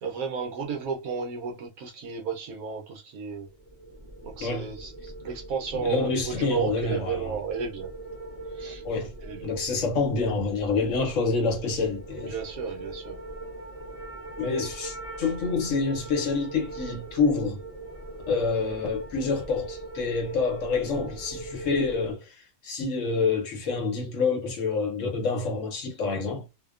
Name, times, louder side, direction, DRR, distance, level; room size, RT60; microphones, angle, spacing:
voice 1, 0.0-3.5 4.2-7.9 8.5-8.8 9.2-9.5 12.2-13.2, right 6 dB, 80° right, 1.2 m, -33 dB
sound 1, 3.5-22.1, right 2 dB, 40° right, 0.5 m, -41 dB
voice 2, 5.7-7.4 8.8-9.1 9.4-12.3 14.4-17.6 18.3-22.3 22.6-26.4, left 4 dB, 65° left, 1.0 m, -27 dB
2.8 x 2.1 x 2.3 m
omnidirectional pair, 1.5 m